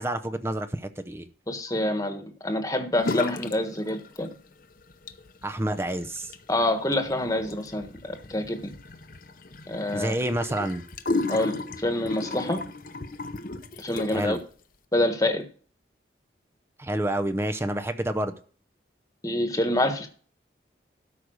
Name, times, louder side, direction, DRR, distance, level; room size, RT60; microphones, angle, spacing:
voice 1, 0.0-1.3 5.4-6.3 9.9-10.9 14.1-14.4 16.8-18.3, right 1 dB, 15° right, 0.6 m, -28 dB
voice 2, 1.5-4.3 6.5-8.7 9.7-10.1 11.3-12.6 13.8-14.4 14.9-15.4 19.2-20.1, left 1 dB, 20° left, 1.3 m, -27 dB
sound 1, 3.0-3.6 3.9-4.5 4.9-14.4, left 3 dB, 50° left, 0.8 m, -34 dB
13.0 x 5.3 x 6.3 m
head